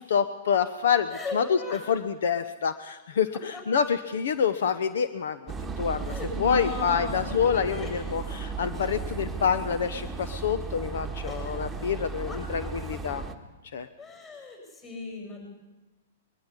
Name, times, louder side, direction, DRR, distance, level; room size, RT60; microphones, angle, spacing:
voice 1, 0.0-1.4 1.9-6.1 6.4-13.2 13.7-13.9, left 7 dB, 75° left, 12 dB, 1.0 m, -27 dB
voice 2, 1.1-1.8 3.5-3.6 6.0-8.6 11.3-11.9 12.3-12.7 14.0-15.5, left 3 dB, 25° left, 1 dB, 7.4 m, -38 dB
sound 1, 5.5-13.4, right 5 dB, 5° right, 1.4 m, -35 dB
21.5 x 13.0 x 9.9 m, 1.1 s
hypercardioid pair, 140°, 0 cm